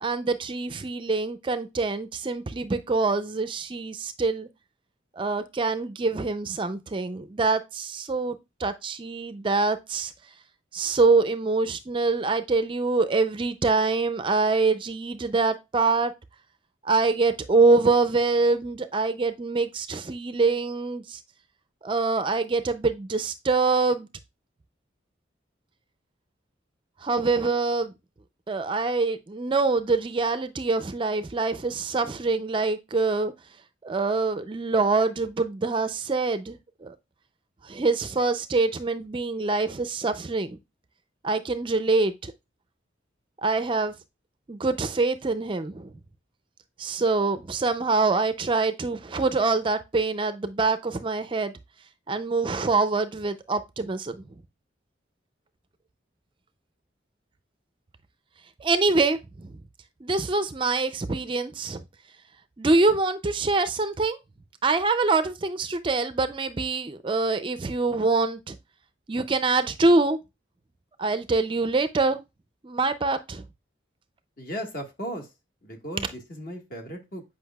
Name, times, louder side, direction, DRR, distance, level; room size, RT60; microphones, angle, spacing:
voice 1, 0.0-4.5 5.1-10.1 10.7-16.1 16.8-21.2 21.8-24.1 27.0-27.9 28.5-33.3 33.8-36.6 36.8-36.9 37.6-40.6 41.2-42.3 43.4-43.9 44.5-45.9 46.8-51.5 52.1-54.2 58.6-59.5 60.0-61.8 62.6-64.2 64.6-68.6 69.1-70.2 71.0-72.2 72.6-73.4, right 3 dB, 25° right, 0.4 m, -25 dB
voice 2, 74.4-75.3 75.6-77.2, equal, 45° left, 1.6 m, -36 dB
8.1 x 5.3 x 2.3 m
head